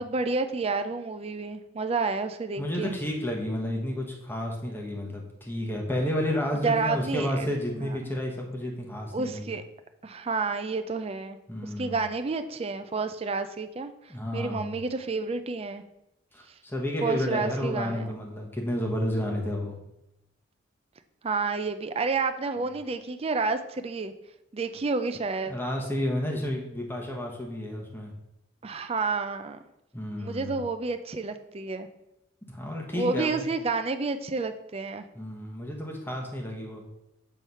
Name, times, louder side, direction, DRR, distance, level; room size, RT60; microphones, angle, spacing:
voice 1, 0.0-2.9 6.6-8.2 9.1-9.6 10.0-11.4 11.6-15.8 17.0-18.2 21.2-24.1 24.5-25.6 28.6-29.6 30.2-31.9 32.9-35.0, right 4 dB, 30° right, 9 dB, 0.4 m, -30 dB
voice 2, 2.6-9.5 11.5-12.0 14.1-14.7 16.3-19.7 25.5-28.1 29.9-30.6 32.5-33.4 35.1-36.8, left 1 dB, 10° left, 0 dB, 1.0 m, -31 dB
7.8 x 3.3 x 5.4 m, 0.88 s
head